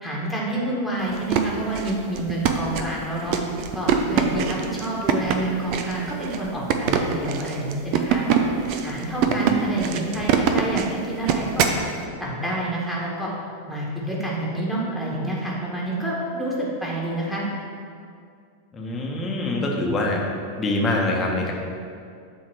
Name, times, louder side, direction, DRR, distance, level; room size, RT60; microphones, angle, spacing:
voice 1, 0.0-3.4 3.7-8.4 8.8-11.7 12.2-13.3 13.7-17.4, right 1 dB, ahead, -6 dB, 1.6 m, -28 dB
sound 1, 1.1-11.8, right 7 dB, 45° right, 0.5 m, -24 dB
voice 2, 18.7-20.2 20.6-21.5, left 2 dB, 20° left, -1 dB, 1.2 m, -24 dB
7.6 x 3.6 x 6.1 m, 2.3 s
figure-of-eight pair, 90°, 0 cm